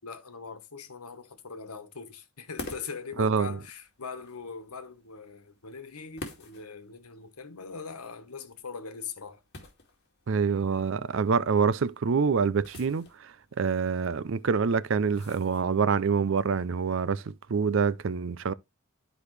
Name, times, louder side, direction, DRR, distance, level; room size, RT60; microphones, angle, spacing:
voice 1, 0.0-9.4, left 5 dB, 90° left, 1.3 m, -41 dB
sound 1, 2.5-16.0, left 2 dB, 50° left, 2.3 m, -49 dB
voice 2, 3.2-3.6 10.3-18.5, right 5 dB, 60° right, 0.4 m, -26 dB
11.5 x 5.0 x 3.2 m
head